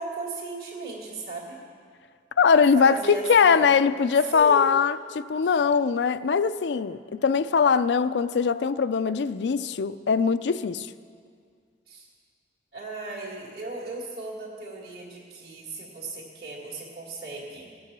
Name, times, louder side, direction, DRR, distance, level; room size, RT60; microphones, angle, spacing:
voice 1, 0.0-1.6 2.7-3.7 4.3-4.8 5.4-5.5 11.9-12.1 12.7-17.7, right 2 dB, 60° right, 2.3 m, -36 dB
voice 2, 2.4-10.9, left 6 dB, 80° left, 0.4 m, -21 dB
17.5 x 8.5 x 6.1 m
head